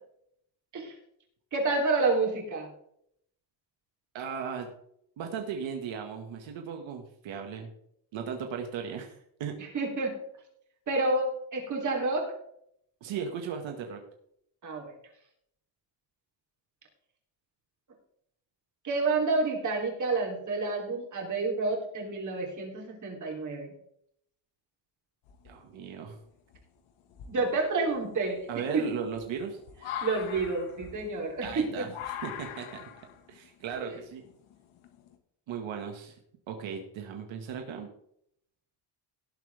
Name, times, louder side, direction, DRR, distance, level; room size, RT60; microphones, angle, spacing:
voice 1, 1.5-2.7 9.7-10.2 10.9-12.3 14.6-14.9 18.8-23.7 27.3-28.4 28.7-28.8 30.0-31.9 33.8-33.9, right 3 dB, 40° right, 0 dB, 3.4 m, -29 dB
voice 2, 4.1-4.7 5.2-7.7 8.1-9.5 13.0-14.0 25.4-26.2 28.5-29.6 31.4-32.9 33.3-34.2 35.5-36.2 36.5-37.9, right 7 dB, 70° right, 3 dB, 1.9 m, -37 dB
sound 1, 25.2-25.9 26.5-26.6 27.1-35.1, left 9 dB, 90° left, 1.8 m, -42 dB
18.0 x 7.7 x 3.5 m, 0.71 s
cardioid pair, 165°, 47 cm